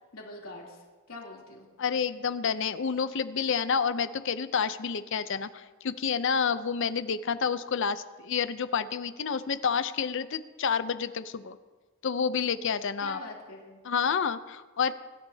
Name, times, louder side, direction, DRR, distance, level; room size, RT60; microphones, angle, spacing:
voice 1, 0.1-1.7 13.0-13.8, left 2 dB, 85° left, -3 dB, 3.1 m, -43 dB
voice 2, 1.8-11.6 12.0-13.2 13.8-14.9, left 6 dB, 65° left, 12 dB, 0.6 m, -29 dB
24.0 x 12.0 x 2.8 m, 1.3 s
head